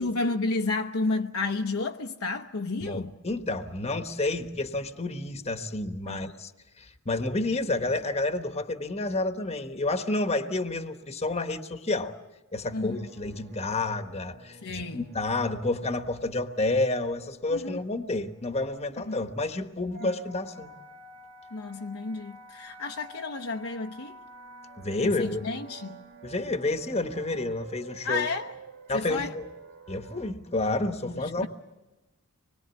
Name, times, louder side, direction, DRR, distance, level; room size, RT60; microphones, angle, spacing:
voice 1, 0.0-3.1 6.0-6.3 12.7-13.0 14.6-15.0 17.5-17.8 19.0-19.2 20.0-20.1 21.5-24.2 25.0-26.1 28.0-28.5 28.9-29.4 31.0-31.5, left 3 dB, 75° left, 0.9 m, -31 dB
voice 2, 2.8-6.5 6.8-12.1 12.5-20.7 24.8-25.4 26.2-28.3 28.9-29.4 29.9-31.5, left 2 dB, 30° left, 1.1 m, -30 dB
sound 1, 12.9-30.3, right 2 dB, 55° right, 1.9 m, -49 dB
25.5 x 21.5 x 8.2 m
head